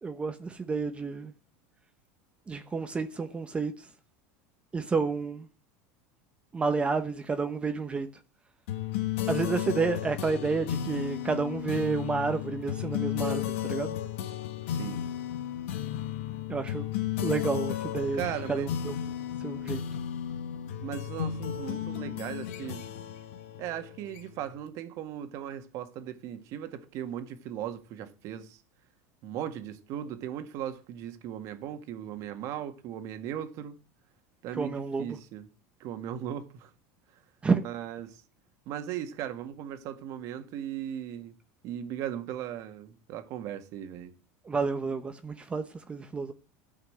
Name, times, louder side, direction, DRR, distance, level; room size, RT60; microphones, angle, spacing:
voice 1, 0.0-1.3 2.5-3.9 4.7-5.5 6.5-8.1 9.3-14.0 16.5-16.9 17.2-18.2 18.5-19.1 19.4-19.8 34.5-35.2 37.4-37.6 44.4-46.3, right 4 dB, 15° right, 0.9 m, -30 dB
sound 1, 8.7-24.5, left 11 dB, 85° left, 1.5 m, -34 dB
voice 2, 14.7-15.0 18.1-18.7 20.8-22.9 23.6-28.6 29.2-33.8 34.4-35.4 35.8-36.7 37.6-38.2 38.6-41.3 41.6-44.1, right 10 dB, 50° right, 1.8 m, -37 dB
13.0 x 5.7 x 8.0 m
supercardioid pair, 135°, 7 cm